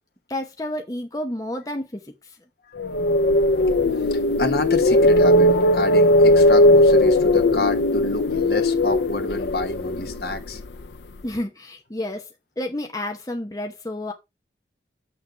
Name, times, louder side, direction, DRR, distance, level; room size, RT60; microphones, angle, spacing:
voice 1, 0.3-2.4 11.2-12.3 12.6-14.1, left 1 dB, 20° left, 0.8 m, -30 dB
sound 1, 2.8-10.9, left 1 dB, 75° left, 0.6 m, -18 dB
voice 2, 3.9-10.6, left 2 dB, 60° left, 1.3 m, -29 dB
7.5 x 6.1 x 4.3 m
head